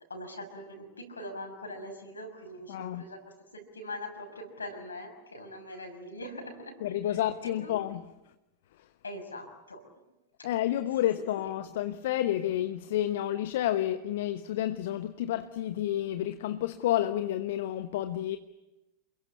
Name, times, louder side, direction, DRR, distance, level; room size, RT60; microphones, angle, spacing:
voice 1, 0.1-6.7 7.0-7.8 9.0-9.8, left 1 dB, 75° left, 6.2 m, -42 dB
voice 2, 2.7-3.0 6.8-8.0 8.8-8.9 10.4-18.4, left 12 dB, 55° left, 1.0 m, -30 dB
28.5 x 22.5 x 8.6 m
figure-of-eight pair, 90°, 0 cm